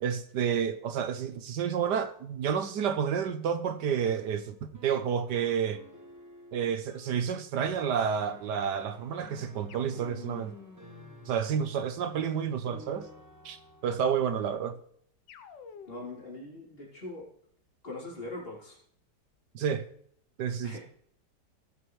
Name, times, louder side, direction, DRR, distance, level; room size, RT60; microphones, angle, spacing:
voice 1, 0.0-5.8 6.5-10.5 11.3-13.1 13.4-13.6 13.8-14.8 19.5-19.8 20.4-20.8, right 7 dB, 75° right, 1.4 m, -30 dB
sound 1, 4.1-14.1, left 1 dB, 10° right, 1.1 m, -53 dB
sound 2, 9.7-12.2 15.3-16.3, left 6 dB, 85° left, 1.6 m, -50 dB
voice 2, 15.9-17.3 17.8-18.8 20.6-20.8, left 2 dB, 30° left, 3.9 m, -41 dB
18.5 x 7.8 x 3.3 m
omnidirectional pair, 1.9 m